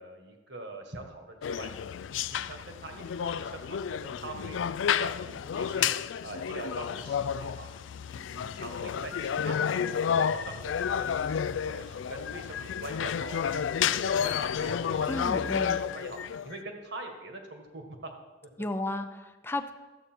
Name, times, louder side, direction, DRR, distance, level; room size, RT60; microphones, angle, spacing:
voice 1, 0.0-1.7 2.1-5.9 6.2-7.7 8.0-15.5 15.8-16.2 16.4-18.1, right 2 dB, 65° right, 3 dB, 1.6 m, -43 dB
sound 1, 1.4-16.6, left 8 dB, 85° left, 0.4 m, -31 dB
voice 2, 15.1-15.8 18.6-19.8, left 2 dB, 10° left, 8 dB, 0.5 m, -33 dB
13.0 x 8.1 x 4.5 m, 1.2 s
head